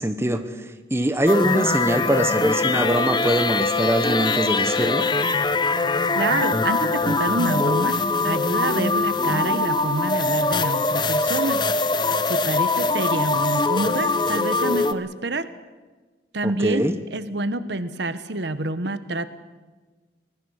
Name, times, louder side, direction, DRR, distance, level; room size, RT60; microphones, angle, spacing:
voice 1, 0.0-5.1 16.4-16.9, right 1 dB, 15° right, 8 dB, 0.9 m, -23 dB
sound 1, 1.3-14.9, left 3 dB, 25° left, 0.8 m, -22 dB
voice 2, 6.2-8.0 8.2-11.6 12.3-15.5 16.3-19.3, right 2 dB, 65° right, 12 dB, 1.1 m, -27 dB
24.0 x 19.0 x 6.4 m, 1.3 s
head